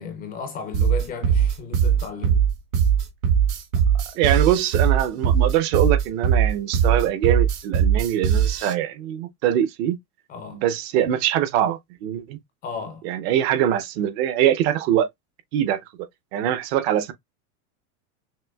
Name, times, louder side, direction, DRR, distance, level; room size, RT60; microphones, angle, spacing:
voice 1, 0.0-2.4 10.3-10.6 12.6-13.0, left 5 dB, 20° left, 0.4 m, -34 dB
sound 1, 0.7-8.7, right 8 dB, 85° right, 1.6 m, -20 dB
voice 2, 4.2-10.0 10.5-12.4 13.0-15.1 15.5-17.1, right 11 dB, 45° right, 0.6 m, -23 dB
5.9 x 2.6 x 2.2 m
supercardioid pair, 150°, 45 cm